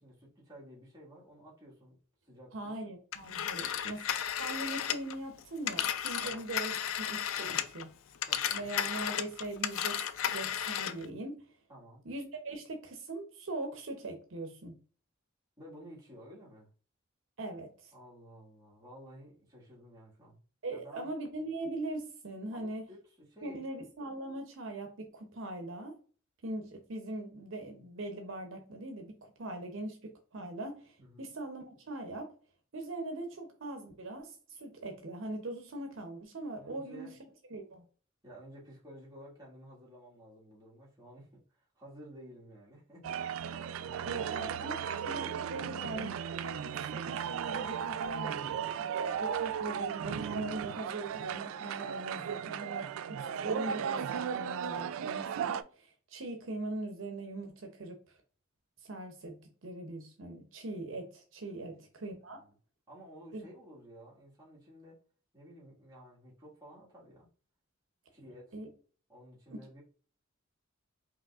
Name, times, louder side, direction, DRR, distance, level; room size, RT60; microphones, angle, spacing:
voice 1, 0.0-2.0 2.2-2.8 3.5-3.9 6.2-6.5 7.4-7.7 8.3-8.7 11.7-12.0 15.6-16.7 17.9-20.4 20.7-21.1 22.5-23.6 31.0-31.2 36.6-37.2 38.2-44.8 45.2-46.1 52.3-52.5 61.6-61.9 62.3-62.5 62.9-65.0 65.3-67.3 68.1-68.6 69.1-69.8, equal, 20° right, 1.7 m, -53 dB
voice 2, 2.5-4.0 4.4-7.9 8.5-10.0 10.3-11.4 12.0-14.7 17.4-17.9 20.6-22.8 23.4-26.0 26.4-32.3 32.7-37.1 37.5-37.8 44.0-44.8 45.0-46.1 46.4-48.5 49.0-58.0 58.8-62.4 63.3-63.4 68.5-68.7 69.5-69.6, right 2 dB, 70° right, 0.7 m, -41 dB
Telephone, 3.1-7.8 8.1-11.1, left 9 dB, 85° left, 0.4 m, -34 dB
sound 1, 43.0-55.6, right 8 dB, 90° right, 0.3 m, -36 dB
5.1 x 3.0 x 2.4 m
head